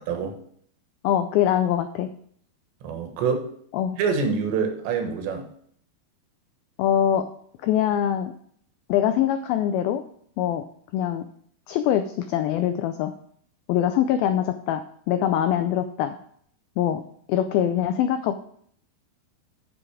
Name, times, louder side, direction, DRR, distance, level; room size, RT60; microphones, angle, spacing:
voice 1, 0.1-0.4 2.8-3.5 4.0-5.5, right 5 dB, 90° right, 5 dB, 3.6 m, -26 dB
voice 2, 1.0-2.1 3.7-4.0 6.8-7.3 7.6-8.3 8.9-10.0 10.4-10.6 10.9-11.3 11.7-13.1 13.7-16.2 16.8-17.0 17.3-18.4, left 10 dB, 90° left, 9 dB, 2.1 m, -23 dB
8.4 x 7.5 x 4.9 m, 0.63 s
omnidirectional pair, 4.9 m